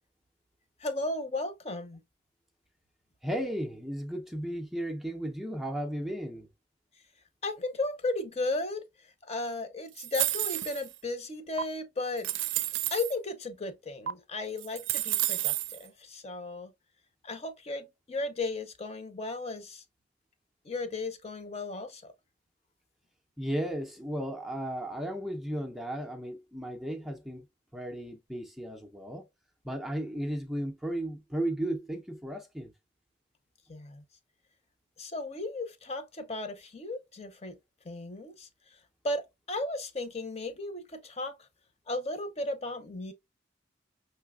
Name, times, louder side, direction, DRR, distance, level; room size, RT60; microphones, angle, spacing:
voice 1, 0.8-2.0 7.4-12.3 12.9-16.7 17.2-19.8 20.6-22.1 33.7-34.0 35.0-37.6 37.8-38.8 39.0-41.3 41.9-43.1, left 2 dB, 35° left, 0.7 m, -35 dB
voice 2, 3.2-6.5 23.4-27.4 27.7-29.3 29.6-32.7, right 1 dB, ahead, 0.5 m, -35 dB
sound 1, 10.0-10.9 11.6-11.7 12.2-13.1 14.1-14.2 14.6-15.8, right 14 dB, 80° right, 0.4 m, -30 dB
5.6 x 3.3 x 2.3 m
head